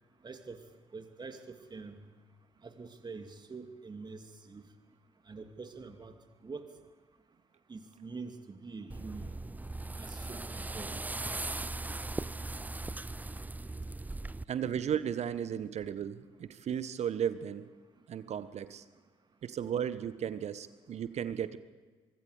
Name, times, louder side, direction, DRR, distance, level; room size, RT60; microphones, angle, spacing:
voice 1, 0.2-0.6 0.9-2.0 2.6-4.6 5.3-6.1 6.4-6.7 7.7-9.3 10.0-11.1, right 4 dB, 30° right, 7 dB, 2.5 m, -45 dB
sound 1, 8.9-14.4, right 2 dB, 10° right, 0.6 m, -39 dB
voice 2, 14.5-17.7 18.1-18.8 19.4-21.6, right 9 dB, 50° right, 14 dB, 1.3 m, -35 dB
24.0 x 24.0 x 5.1 m, 1.4 s
figure-of-eight pair, 45°, 15 cm